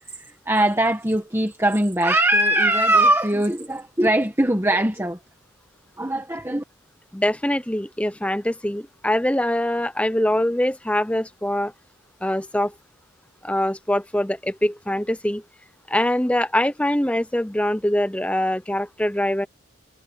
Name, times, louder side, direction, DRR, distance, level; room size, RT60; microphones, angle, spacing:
voice 1, 0.0-5.2 6.0-6.6, right 1 dB, 10° right, 1.5 m, -21 dB
voice 2, 7.1-11.7 12.2-12.7 13.4-15.4 15.9-19.5, left 1 dB, 5° left, 0.8 m, -23 dB
head